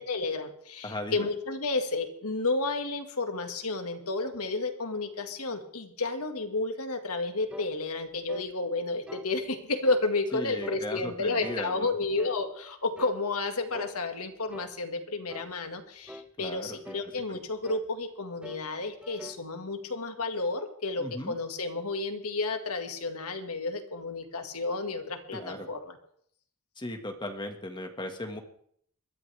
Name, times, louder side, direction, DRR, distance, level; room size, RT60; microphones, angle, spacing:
voice 1, 0.0-25.9, left 3 dB, 80° left, 5 dB, 2.0 m, -31 dB
voice 2, 0.8-1.3 10.3-11.9 16.4-17.0 17.3-17.4 21.0-21.4 25.3-25.7 26.8-28.4, left 1 dB, 20° left, 4 dB, 1.8 m, -37 dB
sound 1, 7.5-7.8 8.3-8.5 9.1-9.3 9.8-10.1 10.6-10.9 11.4-11.6 12.2-12.4 13.0-13.2 13.7-14.0 14.5-14.8 15.3-15.5 16.1-16.3 16.8-17.1 17.6-17.9 18.4-18.7 19.0-19.4, equal, 5° right, 0.5 m, -44 dB
21.5 x 13.5 x 3.5 m, 0.64 s
head